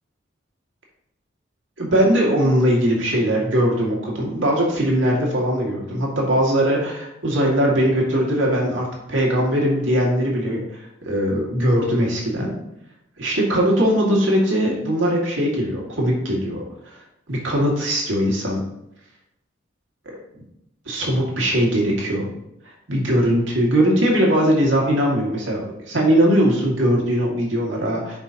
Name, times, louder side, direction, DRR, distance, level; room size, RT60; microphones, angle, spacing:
voice 1, 1.8-12.5 13.2-16.6 17.3-18.6 20.9-22.3 22.9-28.2, equal, 75° right, -2 dB, 2.3 m, -20 dB
9.8 x 5.5 x 2.9 m, 0.82 s
head